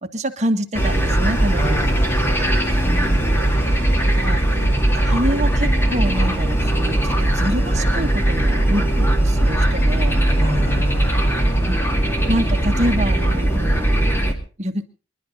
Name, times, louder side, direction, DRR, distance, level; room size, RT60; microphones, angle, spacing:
voice 1, 0.0-1.8 2.9-3.4 4.1-4.4 4.9-10.2 11.6-11.8 12.3-14.0 14.6-14.9, equal, 35° right, 5 dB, 1.5 m, -26 dB
sound 1, 0.7-14.3, right 1 dB, 15° left, 2.2 m, -19 dB
voice 2, 1.6-2.6 3.5-4.3 4.6-4.7 10.4-11.8, left 1 dB, 30° left, 1 dB, 3.5 m, -31 dB
27.0 x 11.5 x 4.0 m, 0.37 s
head